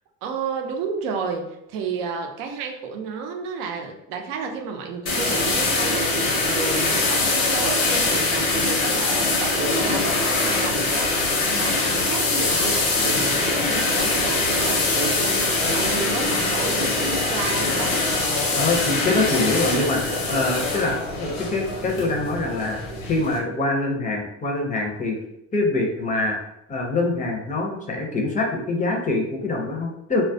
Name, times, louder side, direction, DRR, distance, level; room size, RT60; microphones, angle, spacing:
voice 1, 0.2-11.1 11.6-18.0, right 5 dB, 70° right, 3 dB, 0.6 m, -31 dB
sound 1, 5.1-23.4, left 3 dB, 85° left, 0.8 m, -23 dB
voice 2, 18.6-25.2 25.5-26.4 26.7-30.2, left 2 dB, 20° left, 1 dB, 0.5 m, -24 dB
2.2 x 2.1 x 2.6 m, 0.82 s
supercardioid pair, 85°, 37 cm